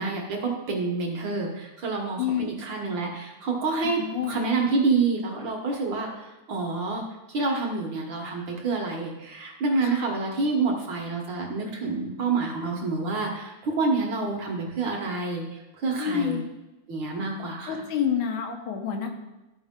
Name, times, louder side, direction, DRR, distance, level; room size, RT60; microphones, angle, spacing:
voice 1, 0.0-7.0 7.3-16.4 16.9-17.8, right 3 dB, 55° right, 1 dB, 1.5 m, -28 dB
voice 2, 2.2-2.5 4.1-4.4 9.9-10.1 16.0-16.5 17.7-19.1, left 8 dB, 85° left, 4 dB, 2.5 m, -28 dB
13.5 x 4.8 x 3.6 m, 1.0 s
omnidirectional pair, 3.3 m